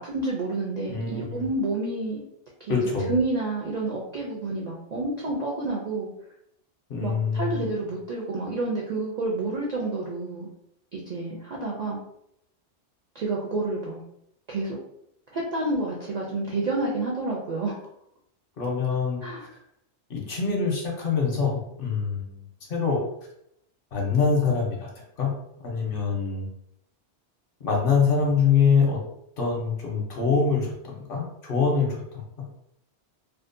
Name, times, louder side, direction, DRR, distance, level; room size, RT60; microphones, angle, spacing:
voice 1, 0.0-2.2 2.6-2.8 3.0-6.1 7.0-10.5 10.9-12.0 13.1-14.0 14.5-14.8 15.3-17.8 19.2-19.4, right 2 dB, 60° right, -3 dB, 0.4 m, -29 dB
voice 2, 0.9-1.4 2.7-3.1 6.9-7.7 18.6-19.5 20.1-23.0 23.9-24.9 25.2-25.3 25.6-26.5 27.6-29.0 29.4-32.5, left 5 dB, 55° left, -1 dB, 0.8 m, -25 dB
2.5 x 2.1 x 2.5 m, 0.75 s
omnidirectional pair, 1.2 m